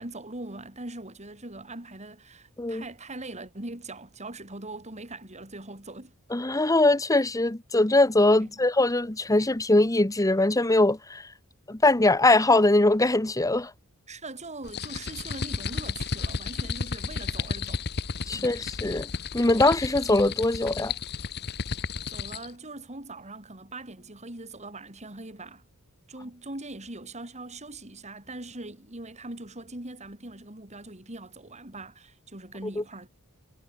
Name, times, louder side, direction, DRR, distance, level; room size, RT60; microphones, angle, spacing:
voice 1, 0.0-6.1 8.4-8.6 14.1-17.8 18.3-18.6 22.1-25.6 26.1-33.1, right 2 dB, 30° right, 4.7 m, -41 dB
voice 2, 6.3-11.3 11.7-13.7 18.3-19.1 19.3-20.9 32.8-32.9, left 2 dB, 15° left, 1.1 m, -22 dB
sound 1, 14.6-22.5, left 5 dB, 50° left, 1.0 m, -33 dB
head